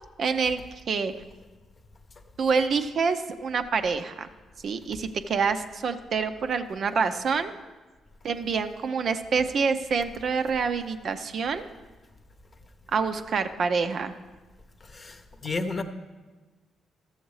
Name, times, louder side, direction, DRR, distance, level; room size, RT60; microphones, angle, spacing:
voice 1, 0.2-0.6 0.9-1.1 2.4-4.3 4.6-7.5 8.2-11.7 12.9-14.1, right 5 dB, 60° right, 8 dB, 0.5 m, -26 dB
voice 2, 14.8-15.8, left 3 dB, 40° left, 7 dB, 0.8 m, -32 dB
13.0 x 7.1 x 3.1 m, 1.3 s
supercardioid pair, 60°, 0 cm